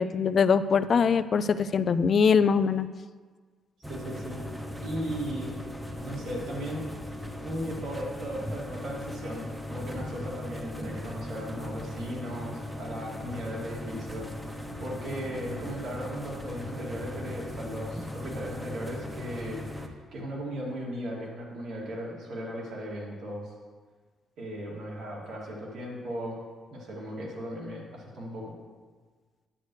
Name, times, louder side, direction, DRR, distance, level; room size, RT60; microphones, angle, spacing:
voice 1, 0.0-2.9, left 6 dB, 50° left, 12 dB, 0.3 m, -23 dB
sound 1, 3.8-19.9, left 1 dB, 10° right, 0.9 m, -38 dB
voice 2, 3.9-4.4 4.8-5.6 6.0-7.1 7.4-23.5 24.4-26.4 26.7-28.5, equal, 75° right, -4 dB, 2.5 m, -37 dB
9.7 x 7.9 x 3.3 m, 1.5 s
cardioid pair, 90°, 0 cm